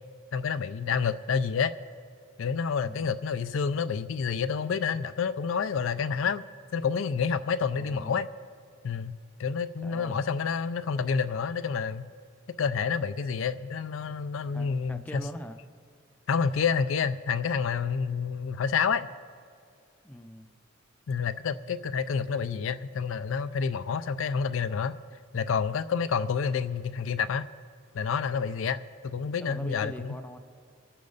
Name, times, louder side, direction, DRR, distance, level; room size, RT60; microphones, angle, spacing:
voice 1, 0.3-1.7 2.4-6.4 6.7-8.3 8.8-12.0 12.5-15.2 16.3-19.1 21.1-24.9 25.3-27.5 27.9-30.2, left 6 dB, 70° left, 12 dB, 0.4 m, -29 dB
voice 2, 2.8-3.1 7.7-8.3 9.8-10.2 14.5-15.6 20.0-20.5 29.4-30.4, equal, 10° left, 6 dB, 0.5 m, -42 dB
23.5 x 8.5 x 4.0 m, 2.3 s
head